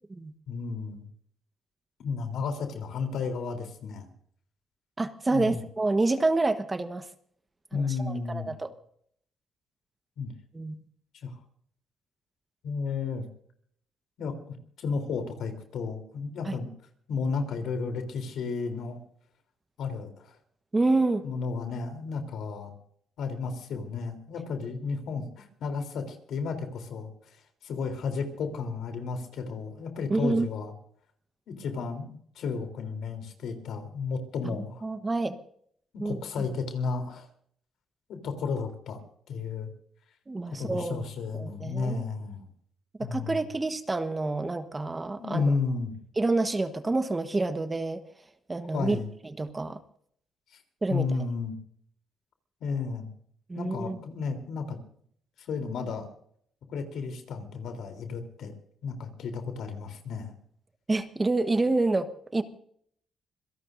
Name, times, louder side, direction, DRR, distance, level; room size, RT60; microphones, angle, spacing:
voice 1, 0.5-1.1 2.0-4.1 5.3-5.6 7.7-8.5 10.2-10.3 11.1-11.3 12.6-13.2 14.2-16.7 17.1-19.0 19.8-20.4 21.2-22.7 23.2-27.4 27.6-30.7 31.5-34.8 35.9-37.3 38.1-39.0 39.3-39.7 40.5-42.4 43.0-43.4 45.2-46.0 48.7-49.1 50.9-51.5 52.6-53.1 53.5-54.8 55.4-56.1 56.7-58.5 58.8-60.3, left 4 dB, 75° left, 6 dB, 3.6 m, -33 dB
voice 2, 5.0-7.1 7.7-8.7 10.5-10.8 16.4-16.5 20.7-21.3 30.1-30.5 34.4-34.6 34.8-35.4 36.0-36.2 40.3-41.1 41.3-42.0 43.0-45.5 46.2-48.0 48.5-49.0 49.4-49.8 50.8-51.1 53.5-54.0 60.9-62.4, right 2 dB, 20° right, 9 dB, 1.3 m, -28 dB
26.0 x 17.5 x 2.7 m, 0.64 s
cardioid pair, 90°, 0 cm